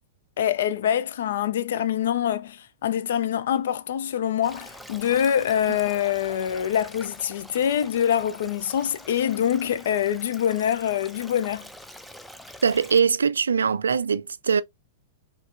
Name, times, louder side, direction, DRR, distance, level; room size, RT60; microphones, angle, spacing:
voice 1, 0.4-11.7, left 9 dB, 60° left, 0.5 m, -25 dB
Stream, 4.4-13.0, equal, ahead, 0.5 m, -45 dB
voice 2, 12.6-14.6, right 6 dB, 70° right, 0.3 m, -22 dB
4.9 x 3.2 x 2.5 m
figure-of-eight pair, 100°, 0 cm